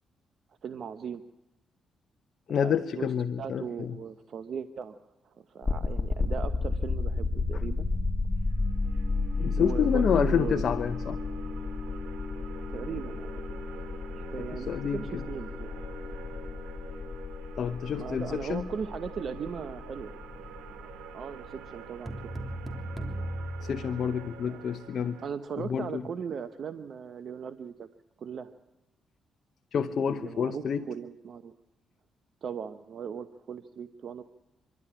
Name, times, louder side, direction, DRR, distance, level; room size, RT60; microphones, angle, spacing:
voice 1, 0.6-1.2 2.6-3.1 3.4-7.9 9.6-10.9 12.7-13.4 14.1-15.8 17.9-20.1 21.1-22.4 24.4-24.6 25.2-27.9 28.2-28.5 30.1-31.5 32.4-34.2, right 7 dB, 60° right, 9 dB, 0.8 m, -38 dB
voice 2, 2.5-4.0 9.4-11.2 14.4-15.2 17.6-18.7 23.6-25.2 25.6-26.0 29.7-30.9, left 7 dB, 60° left, 7 dB, 0.8 m, -29 dB
sound 1, 5.6-22.5, left 3 dB, 20° left, 2.5 m, -33 dB
sound 2, 8.5-25.3, right 9 dB, 90° right, 1.1 m, -48 dB
sound 3, 22.1-24.6, right 1 dB, 20° right, 3.1 m, -37 dB
26.0 x 12.0 x 10.0 m, 1.0 s
supercardioid pair, 65°, 0 cm